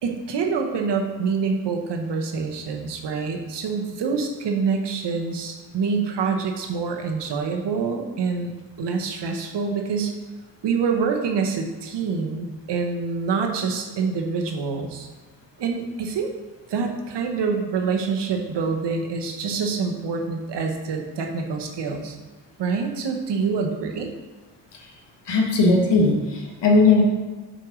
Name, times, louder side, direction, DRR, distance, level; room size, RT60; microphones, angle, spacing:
voice 1, 0.0-10.1 10.6-15.1 15.6-16.3 16.7-22.2 22.6-24.1, right 5 dB, 85° right, 3 dB, 1.0 m, -26 dB
voice 2, 25.2-27.0, left 3 dB, 85° left, 0 dB, 1.3 m, -18 dB
5.1 x 4.6 x 6.0 m, 1.2 s
cardioid pair, 55°, 41 cm